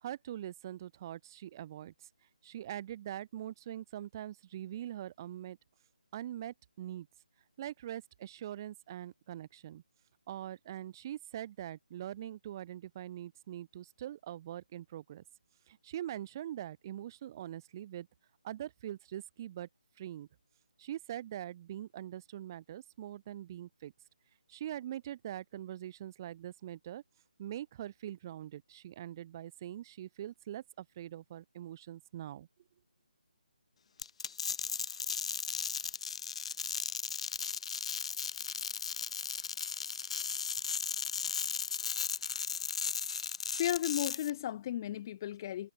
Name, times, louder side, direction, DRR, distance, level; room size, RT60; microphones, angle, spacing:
voice 1, 0.0-2.1 2.4-5.6 6.1-7.1 7.6-9.8 10.3-15.2 15.7-18.1 18.4-19.7 20.0-20.3 20.8-23.9 24.5-27.0 27.4-32.5, right 12 dB, 25° right, 1.5 m, -43 dB
sound 1, 34.0-44.3, left 6 dB, 45° left, 1.1 m, -36 dB
voice 2, 43.5-45.7, left 12 dB, 25° left, 1.0 m, -34 dB
figure-of-eight pair, 165°, 5 cm